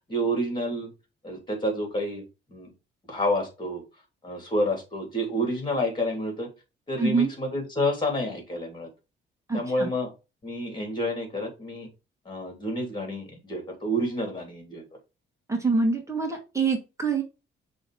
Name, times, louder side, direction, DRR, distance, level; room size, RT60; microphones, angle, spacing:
voice 1, 0.1-0.9 1.2-2.2 2.5-2.7 3.1-3.8 4.2-6.5 6.9-8.9 9.5-10.1 10.4-11.9 12.2-14.8, equal, 25° left, 2 dB, 3.1 m, -29 dB
voice 2, 7.0-7.3 9.5-9.9 15.5-17.2, right 4 dB, 15° right, 2 dB, 1.8 m, -25 dB
6.2 x 3.2 x 4.8 m, 0.28 s
cardioid pair, 90°, 20 cm